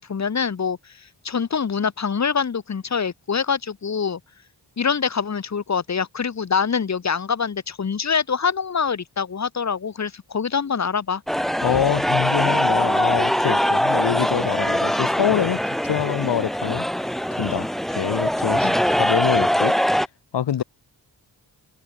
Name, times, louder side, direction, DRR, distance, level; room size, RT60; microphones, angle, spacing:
voice 1, 0.0-4.2 4.8-11.2 18.6-18.8, left 6 dB, 40° left, 1.1 m, -25 dB
sound 1, 11.3-20.1, equal, ahead, 0.3 m, -22 dB
voice 2, 11.6-16.9 17.3-18.6 18.9-19.8 20.3-20.6, left 9 dB, 85° left, 1.2 m, -25 dB
wide cardioid pair, 105°, 41 cm